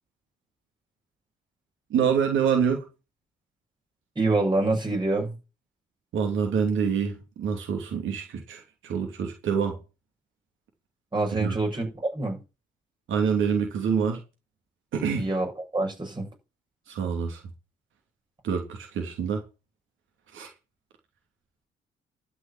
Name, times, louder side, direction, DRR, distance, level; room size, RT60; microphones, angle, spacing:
voice 1, 1.9-2.8 6.1-9.8 11.4-11.6 13.1-14.2 14.9-15.3 16.9-17.4 18.4-19.4 20.3-20.5, right 6 dB, 75° right, 2.9 m, -26 dB
voice 2, 4.1-5.4 11.1-11.9 12.1-12.4 15.2-16.3, right 2 dB, 20° right, 6.7 m, -26 dB
12.5 x 6.1 x 8.4 m
cardioid pair, 90°, 20 cm